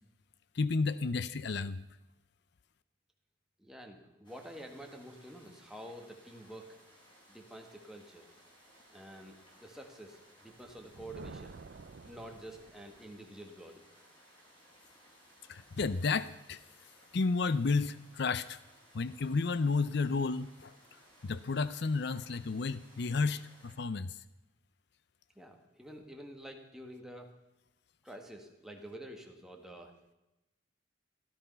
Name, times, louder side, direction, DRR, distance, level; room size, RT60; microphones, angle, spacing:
voice 1, 0.5-1.8 15.5-16.6 17.1-18.6 18.9-20.7 21.2-24.2, left 4 dB, 55° left, 15 dB, 0.5 m, -32 dB
voice 2, 3.6-6.8 7.3-8.3 8.9-11.6 12.1-13.8 25.4-27.3 28.0-29.9, right 1 dB, 5° right, 2 dB, 1.7 m, -48 dB
sound 1, 4.2-23.8, equal, 25° left, 4.9 m, -61 dB
Thunder, 10.5-13.2, right 4 dB, 55° right, 0.4 m, -50 dB
16.5 x 13.5 x 5.6 m, 0.99 s
head